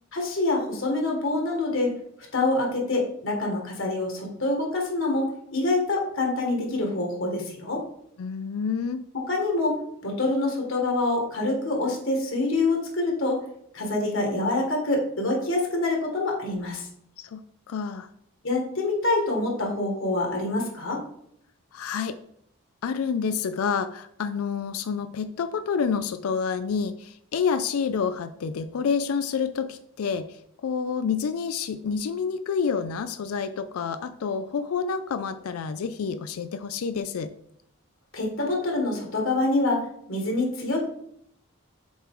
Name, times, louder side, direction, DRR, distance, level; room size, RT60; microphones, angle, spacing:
voice 1, 0.1-1.9 2.3-7.8 9.3-13.4 13.7-16.9 18.4-21.0 38.1-39.8 40.1-40.8, left 2 dB, 65° left, 0 dB, 1.8 m, -26 dB
voice 2, 8.2-9.0 17.2-17.4 17.7-18.1 21.7-22.2 22.8-37.3, left 6 dB, 90° left, 11 dB, 0.4 m, -28 dB
7.1 x 4.4 x 3.7 m, 0.72 s
head